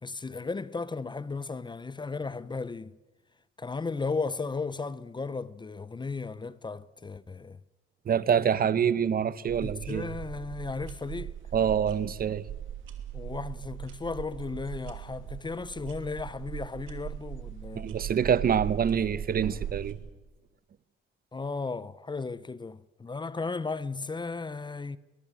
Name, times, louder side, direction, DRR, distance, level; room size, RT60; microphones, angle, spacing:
voice 1, 0.0-2.9 3.6-7.6 9.6-11.3 13.1-17.9 21.3-25.0, left 4 dB, 20° left, 0.8 m, -35 dB
voice 2, 8.1-10.1 11.5-12.5 17.7-20.0, right 8 dB, 50° right, 1.0 m, -26 dB
sound 1, 9.5-19.9, right 11 dB, 85° right, 2.8 m, -39 dB
22.0 x 21.5 x 7.6 m
cardioid pair, 90°, 20 cm